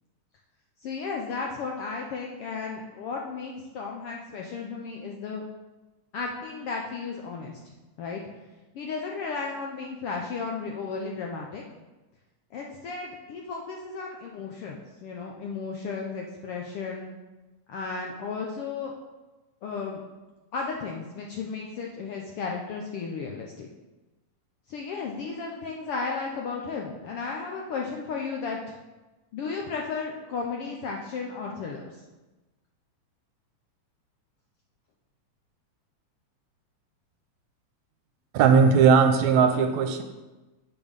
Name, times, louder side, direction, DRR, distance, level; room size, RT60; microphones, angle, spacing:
voice 1, 0.8-5.5 6.1-8.2 8.7-11.6 12.5-17.1 17.7-18.9 19.6-20.0 20.5-23.7 24.7-28.6 29.3-32.0, left 4 dB, 70° left, 0 dB, 1.4 m, -34 dB
voice 2, 38.3-40.0, right 6 dB, 75° right, 7 dB, 1.9 m, -18 dB
8.3 x 7.1 x 5.2 m, 1.1 s
omnidirectional pair, 3.4 m